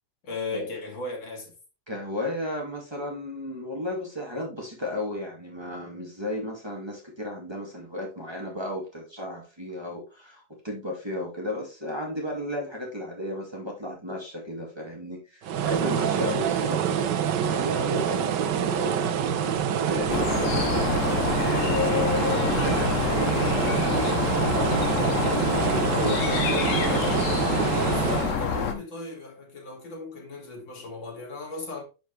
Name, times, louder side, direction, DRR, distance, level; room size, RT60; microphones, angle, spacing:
voice 1, 0.2-1.5 18.1-18.2 27.7-31.8, left 3 dB, 85° left, 3.2 m, -37 dB
voice 2, 1.9-16.9 17.5-27.7, left 1 dB, 15° right, 2.3 m, -34 dB
sound 1, 15.4-28.4, right 8 dB, 70° right, 1.4 m, -26 dB
sound 2, 20.1-28.7, left 6 dB, 50° left, 1.2 m, -27 dB
10.5 x 5.2 x 3.3 m
omnidirectional pair, 2.0 m